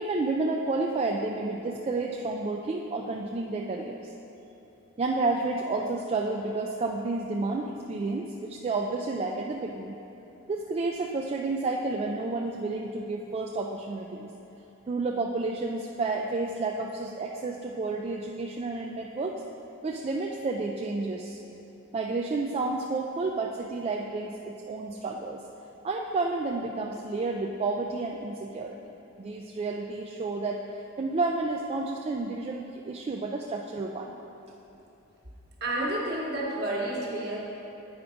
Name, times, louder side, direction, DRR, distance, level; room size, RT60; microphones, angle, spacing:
voice 1, 0.0-4.1 5.0-10.0 10.5-14.3 14.9-19.4 19.8-21.4 21.9-25.4 25.8-28.7 29.2-34.1, right 3 dB, 30° right, 0 dB, 0.3 m, -30 dB
voice 2, 35.6-37.4, right 1 dB, 50° right, -4 dB, 1.4 m, -30 dB
8.6 x 4.7 x 5.1 m, 2.9 s
head